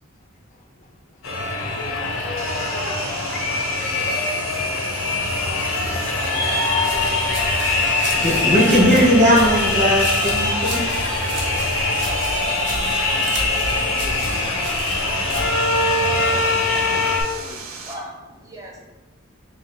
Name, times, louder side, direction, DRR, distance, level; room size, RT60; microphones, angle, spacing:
voice 1, 0.5-0.9 13.0-14.8 15.3-15.6 16.3-17.7, left 3 dB, 40° left, 3 dB, 0.4 m, -40 dB
sound 1, 1.2-17.2, left 2 dB, 75° left, 0.6 m, -22 dB
Sawing, 2.4-17.9, right 5 dB, 85° right, 0.6 m, -36 dB
sound 2, 6.8-15.5, right 1 dB, 55° right, 1.0 m, -32 dB
voice 2, 8.1-10.8, equal, 35° right, -3 dB, 1.0 m, -17 dB
voice 3, 17.5-18.8, equal, 15° right, -1 dB, 0.6 m, -39 dB
3.7 x 3.1 x 3.9 m, 1.2 s
head